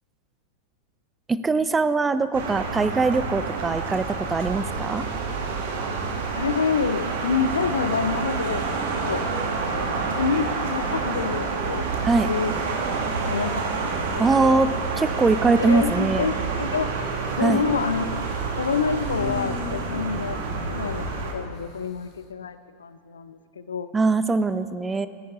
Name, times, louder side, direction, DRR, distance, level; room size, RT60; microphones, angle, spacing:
voice 1, 1.3-5.1 12.0-12.3 14.2-14.7 15.0-16.3 17.4-17.6 23.9-25.1, right 3 dB, 15° right, 13 dB, 0.4 m, -22 dB
sound 1, 2.3-21.3, right 4 dB, 55° right, 1.4 m, -28 dB
voice 2, 6.3-8.6 9.0-9.2 9.7-11.8 12.2-12.5 13.2-14.5 15.6-16.9 17.4-18.1 18.6-20.4 20.7-23.9, left 5 dB, 70° left, 12 dB, 0.5 m, -27 dB
Human voice, 16.7-17.6 18.7-21.5, left 7 dB, 40° left, 0.8 m, -38 dB
17.5 x 9.9 x 3.7 m, 2.2 s
figure-of-eight pair, 90°, 0 cm